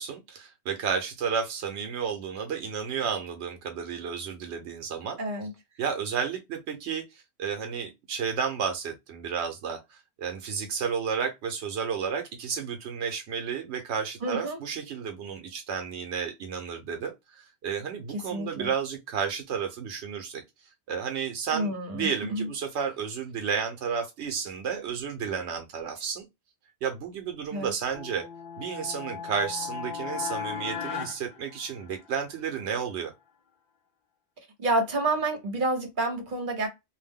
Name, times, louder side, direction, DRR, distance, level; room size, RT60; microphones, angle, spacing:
voice 1, 0.0-5.2 5.8-9.8 10.2-20.4 20.9-26.2 26.8-28.2 28.6-33.1, right 6 dB, 85° right, 0.9 m, -32 dB
voice 2, 5.2-5.5 14.2-14.6 18.1-18.7 21.5-22.5 27.5-27.7 34.6-36.7, right 2 dB, 50° right, 1.1 m, -29 dB
sound 1, 27.9-32.2, left 7 dB, 55° left, 0.6 m, -37 dB
2.6 x 2.1 x 3.4 m
omnidirectional pair, 1.1 m